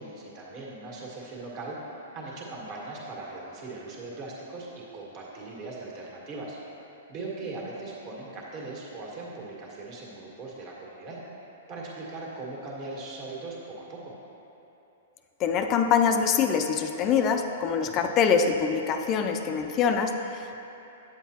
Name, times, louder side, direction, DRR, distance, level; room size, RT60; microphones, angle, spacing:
voice 1, 0.0-6.6 7.1-11.2 11.7-14.1 17.8-18.1 20.5-20.6, right 2 dB, 40° right, -4 dB, 1.6 m, -39 dB
voice 2, 15.4-20.5, left 6 dB, 30° left, 5 dB, 0.3 m, -24 dB
8.8 x 7.2 x 2.9 m, 2.9 s
hypercardioid pair, 140°, 0 cm